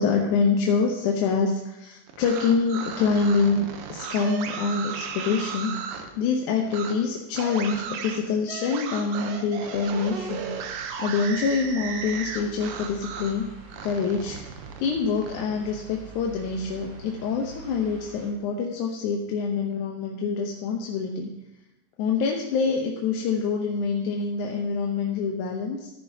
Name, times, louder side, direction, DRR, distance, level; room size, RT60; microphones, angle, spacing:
voice 1, 0.0-10.5 11.0-13.5 13.8-21.3 22.0-25.9, left 5 dB, 75° left, 0 dB, 2.2 m, -26 dB
sound 1, 2.1-6.1 6.7-6.9 7.3-13.4 13.7-15.4, right 6 dB, 80° right, 2.5 m, -35 dB
sound 2, 9.9-18.3, right 5 dB, 55° right, 2.3 m, -45 dB
14.5 x 10.5 x 2.8 m, 0.95 s
omnidirectional pair, 3.9 m